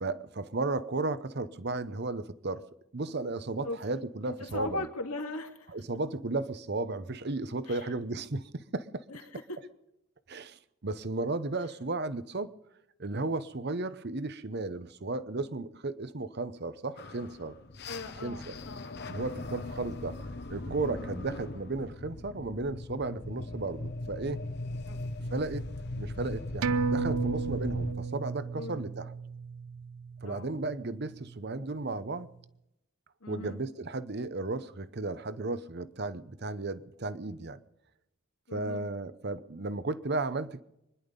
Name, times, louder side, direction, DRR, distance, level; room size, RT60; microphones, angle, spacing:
voice 1, 0.0-2.6 2.9-4.9 5.7-9.0 10.3-12.5 13.0-17.6 18.2-18.5 19.1-20.2 20.5-24.4 25.3-25.7 26.0-29.1 30.2-32.3 33.3-37.6 38.5-40.6, right 3 dB, 50° right, 0.8 m, -34 dB
voice 2, 4.3-5.7 7.7-7.9 9.1-9.6 17.9-18.9 20.8-21.1 24.9-25.0 28.5-28.9 30.2-30.5 33.2-33.6 38.5-38.9, left 2 dB, 85° left, 2.5 m, -39 dB
sound 1, 17.0-27.9, left 2 dB, 50° left, 1.1 m, -39 dB
sound 2, 26.6-31.6 31.9-32.0, right 4 dB, 85° right, 0.6 m, -34 dB
25.0 x 11.0 x 5.3 m
head